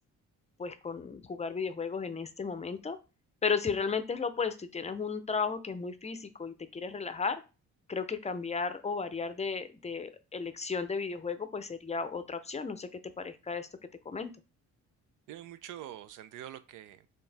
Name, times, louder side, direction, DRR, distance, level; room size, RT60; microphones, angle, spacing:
voice 1, 0.6-3.0 3.4-7.4 7.9-12.9 13.2-13.7 14.0-14.3, left 5 dB, 20° left, 11 dB, 0.5 m, -34 dB
voice 2, 15.3-17.1, right 12 dB, 85° right, 13 dB, 0.5 m, -45 dB
4.5 x 3.1 x 3.3 m, 0.31 s
cardioid pair, 90°, 30 cm